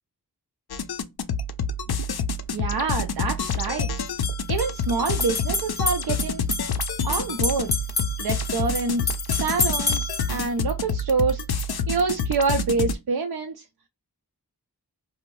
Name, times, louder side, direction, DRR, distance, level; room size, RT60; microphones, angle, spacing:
sound 1, 0.7-12.9, left 4 dB, 70° left, 0.5 m, -28 dB
sound 2, 2.4-2.5 4.1-10.3, left 3 dB, 25° left, 0.6 m, -30 dB
voice 1, 2.5-3.9 4.5-6.4 7.0-7.7 8.2-11.4 11.9-13.6, right 4 dB, 65° right, 0.5 m, -26 dB
2.6 x 2.0 x 3.0 m
wide cardioid pair, 60°, 39 cm